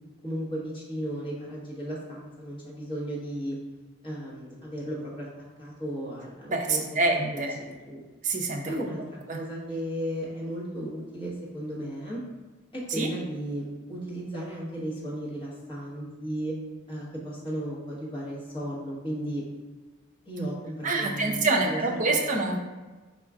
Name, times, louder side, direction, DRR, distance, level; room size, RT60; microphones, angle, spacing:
voice 1, 0.2-3.6 4.0-7.0 7.3-7.5 7.8-8.0 8.6-12.2 12.7-16.6 16.9-19.4 20.3-21.8 22.1-22.3, equal, 25° left, -6 dB, 1.0 m, -35 dB
voice 2, 6.5-7.6 8.2-8.7 9.3-9.4 12.9-13.1 20.8-22.6, right 3 dB, 35° right, 0 dB, 0.5 m, -26 dB
4.7 x 2.2 x 3.5 m, 1.3 s
head